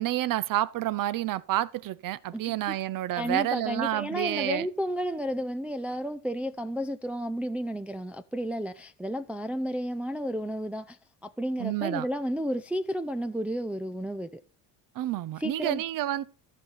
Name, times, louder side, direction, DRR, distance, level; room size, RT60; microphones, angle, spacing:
voice 1, 0.0-4.7 11.6-12.1 15.0-16.2, right 14 dB, 50° right, 0.7 m, -29 dB
voice 2, 2.3-2.7 3.2-14.4 15.4-15.8, equal, 5° right, 0.4 m, -32 dB
14.0 x 5.8 x 4.0 m
supercardioid pair, 80°, 42 cm